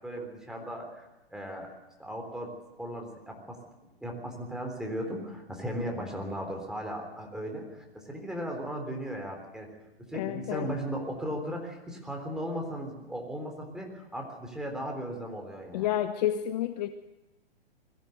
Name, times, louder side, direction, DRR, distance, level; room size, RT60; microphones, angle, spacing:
voice 1, 0.0-1.7 2.0-3.6 4.0-9.7 10.1-15.9, equal, ahead, 2 dB, 3.7 m, -37 dB
voice 2, 10.1-10.7 15.7-16.9, left 11 dB, 40° left, 9 dB, 1.1 m, -30 dB
22.0 x 15.0 x 8.0 m, 1.0 s
hypercardioid pair, 140°, 31 cm